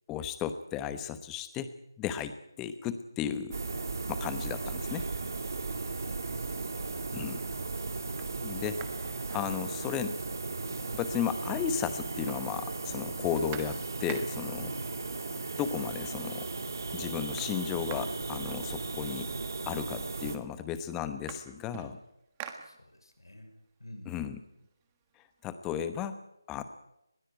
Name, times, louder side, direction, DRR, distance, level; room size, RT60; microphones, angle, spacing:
voice 1, 0.1-1.7 2.0-3.6 4.1-5.1 7.1-7.4 8.4-8.8 9.3-10.2 10.9-14.7 15.6-16.5 16.9-19.3 19.7-22.0 24.1-24.4 25.4-26.2 26.5-26.6, left 9 dB, 10° left, 11 dB, 1.0 m, -34 dB
sound 1, 3.5-20.4, right 3 dB, 50° right, 2.7 m, -36 dB
voice 2, 5.7-7.2 14.6-14.9 22.6-24.2, left 1 dB, 85° left, 8 dB, 5.7 m, -50 dB
sound 2, 8.2-10.1 10.5-10.6 10.8-11.6 11.9-14.6 15.6-15.7 16.1-16.6 16.8-19.2 20.0-20.1 20.4-23.3 23.7-25.4, right 9 dB, 15° right, 1.5 m, -49 dB
21.0 x 17.5 x 9.2 m, 0.88 s
figure-of-eight pair, 165°, 2 cm